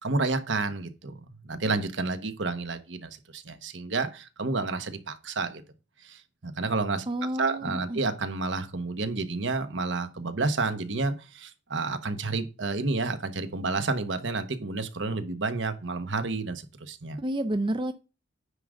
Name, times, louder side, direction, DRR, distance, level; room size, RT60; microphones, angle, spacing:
voice 1, 0.0-5.6 6.0-7.1 7.4-17.2, right 3 dB, 70° right, 1.2 m, -30 dB
voice 2, 7.1-8.0 17.2-17.9, right 1 dB, 25° right, 0.5 m, -30 dB
9.7 x 3.7 x 6.3 m
head